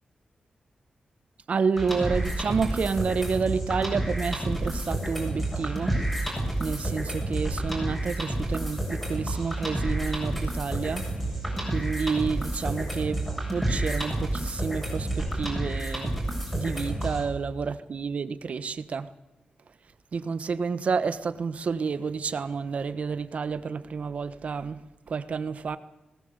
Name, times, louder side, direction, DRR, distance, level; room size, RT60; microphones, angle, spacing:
voice 1, 1.5-5.9 6.6-11.1 11.7-13.2 13.5-16.1 16.5-19.1 20.1-24.8 25.1-25.8, right 5 dB, 55° right, 1.3 m, -29 dB
sound 1, 1.8-17.2, right 1 dB, 5° left, 7.6 m, -30 dB
21.0 x 19.0 x 8.2 m
wide cardioid pair, 160°, 3 cm